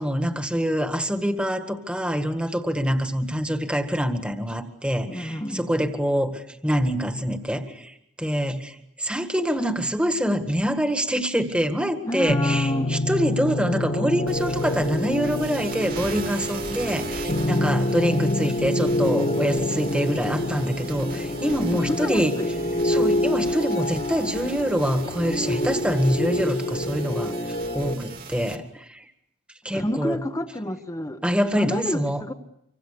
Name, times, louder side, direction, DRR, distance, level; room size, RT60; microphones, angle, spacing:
voice 1, 0.0-22.4 22.8-29.0 29.6-30.2 31.2-32.2, equal, 5° right, 7 dB, 1.8 m, -25 dB
voice 2, 5.1-5.7 12.0-12.9 21.7-22.5 29.7-31.2 31.5-32.3, left 1 dB, 20° left, 8 dB, 1.2 m, -29 dB
sound 1, 12.3-27.9, left 1 dB, 45° left, 2.2 m, -26 dB
sound 2, 14.3-28.6, right 4 dB, 50° right, 2.8 m, -39 dB
26.0 x 25.5 x 6.8 m, 0.78 s
head